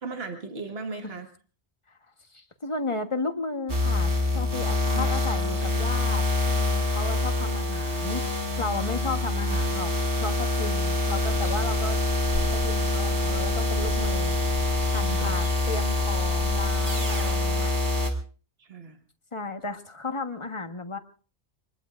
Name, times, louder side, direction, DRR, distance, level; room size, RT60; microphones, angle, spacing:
voice 1, 0.0-1.3 4.9-5.0 15.1-15.3 18.6-19.0, right 4 dB, 60° right, 4 dB, 1.9 m, -36 dB
voice 2, 2.3-8.2 8.6-9.9 10.2-12.0 12.5-14.4 14.9-17.7 19.3-21.0, left 3 dB, 25° left, 6 dB, 1.4 m, -34 dB
sound 1, 3.7-18.1, left 2 dB, 75° right, 3.3 m, -25 dB
sound 2, 11.2-17.5, left 1 dB, 50° left, 2.4 m, -39 dB
26.5 x 21.0 x 2.5 m, 0.39 s
omnidirectional pair, 1.2 m